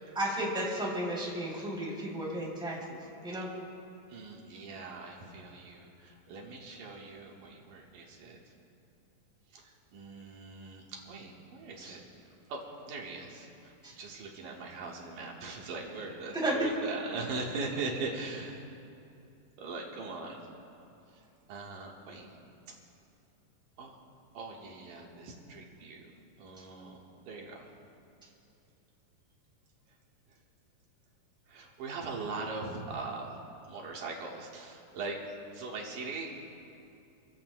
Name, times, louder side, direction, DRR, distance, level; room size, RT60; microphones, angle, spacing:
voice 1, 0.1-3.0 3.2-3.5 11.8-11.9 13.8-13.9 16.3-16.6, right 1 dB, ahead, -5 dB, 2.5 m, -33 dB
voice 2, 4.1-8.4 9.5-12.0 12.5-12.6 12.9-18.7 19.6-20.5 21.1-22.4 23.8-24.0 24.3-26.1 26.4-27.6 31.5-33.4 33.7-36.3, right 3 dB, 75° right, -2 dB, 2.9 m, -41 dB
26.0 x 15.5 x 2.2 m, 2.7 s
omnidirectional pair, 3.9 m